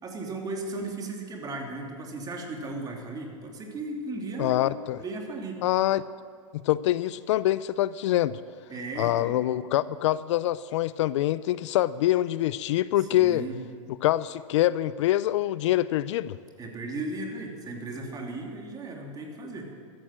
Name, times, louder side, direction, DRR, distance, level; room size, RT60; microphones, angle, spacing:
voice 1, 0.0-4.7 5.0-5.6 8.7-9.3 13.0-13.6 16.6-19.7, right 2 dB, 20° right, 1 dB, 2.9 m, -36 dB
voice 2, 4.4-5.0 5.6-6.0 6.6-8.3 9.0-13.4 14.0-16.4, left 14 dB, 60° left, 18 dB, 0.5 m, -25 dB
14.0 x 13.5 x 7.5 m, 2.3 s
hypercardioid pair, 115°, 17 cm